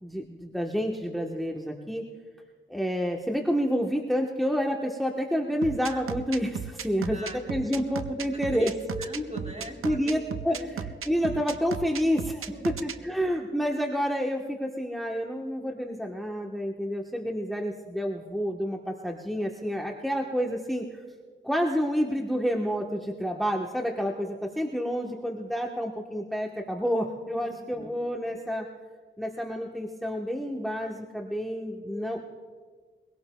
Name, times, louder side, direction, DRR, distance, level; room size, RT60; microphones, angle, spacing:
voice 1, 0.0-2.0 2.7-8.7 9.8-10.6 11.1-20.9 21.4-28.7 29.2-32.2, equal, ahead, 1 dB, 1.2 m, -29 dB
sound 1, 5.6-13.0, right 7 dB, 90° right, 0.6 m, -35 dB
voice 2, 7.1-7.4 7.7-7.8 8.5-10.7 12.5-13.1 27.4-28.0, equal, 35° right, 1 dB, 3.4 m, -41 dB
22.5 x 17.0 x 2.3 m, 1.6 s
cardioid pair, 45°, 21 cm